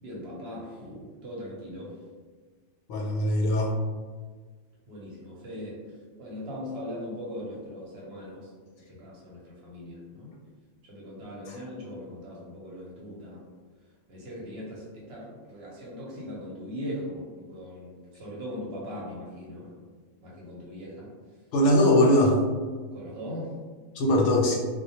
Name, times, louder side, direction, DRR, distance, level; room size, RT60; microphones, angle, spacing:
voice 1, 0.0-1.9 4.9-5.8 6.2-8.4 8.9-10.3 10.9-13.4 14.1-19.7 20.2-21.1 22.9-23.5, equal, 60° right, -5 dB, 0.9 m, -39 dB
voice 2, 2.9-3.7 11.5-11.6 21.5-22.4 23.9-24.6, left 1 dB, 70° left, -1 dB, 0.8 m, -21 dB
2.1 x 2.1 x 2.7 m, 1.5 s
omnidirectional pair, 1.3 m